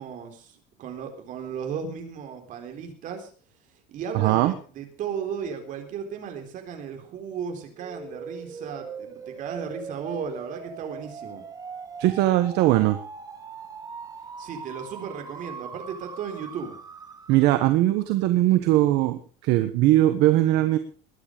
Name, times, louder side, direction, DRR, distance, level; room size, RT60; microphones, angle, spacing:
voice 1, 0.0-3.3 3.9-11.5 14.4-16.8, right 7 dB, 40° right, 5 dB, 4.0 m, -35 dB
voice 2, 4.1-4.5 12.0-13.0 17.3-20.8, right 15 dB, 60° right, 9 dB, 1.4 m, -20 dB
sound 1, 7.8-17.7, right 5 dB, 20° right, 1.8 m, -40 dB
21.5 x 10.0 x 5.2 m, 0.39 s
cardioid pair, 165°, 20 cm